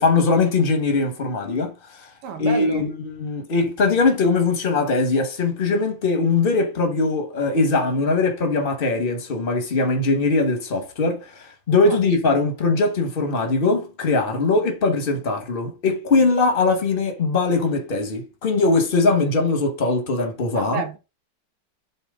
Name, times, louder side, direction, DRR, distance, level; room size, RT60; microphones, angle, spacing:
voice 1, 0.0-1.7 2.4-20.8, left 3 dB, 30° left, 1.1 m, -21 dB
voice 2, 2.2-2.8 11.9-12.2 20.5-21.0, right 6 dB, 75° right, 1.9 m, -30 dB
7.1 x 2.9 x 5.0 m
omnidirectional pair, 2.4 m